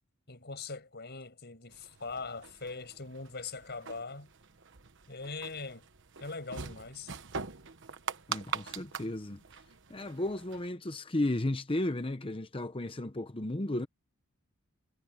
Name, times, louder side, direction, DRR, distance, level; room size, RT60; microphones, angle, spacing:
voice 1, 0.3-4.3 5.1-5.8 6.2-7.1, left 4 dB, 45° left, 7.1 m, -41 dB
sound 1, 1.7-10.7, right 6 dB, 55° right, 1.2 m, -43 dB
voice 2, 8.3-9.4 9.9-13.9, left 1 dB, 25° left, 0.8 m, -34 dB
head